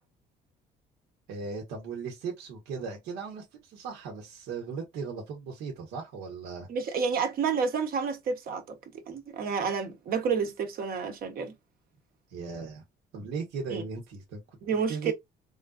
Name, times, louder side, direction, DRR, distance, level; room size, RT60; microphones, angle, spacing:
voice 1, 1.3-6.7 12.3-12.8 13.1-14.4 14.9-15.1, right 5 dB, 85° right, 1.1 m, -37 dB
voice 2, 6.7-8.8 9.1-11.5 13.7-13.8 14.6-15.1, right 6 dB, 60° right, 1.0 m, -29 dB
3.6 x 2.5 x 2.3 m
cardioid pair, 110°, 17 cm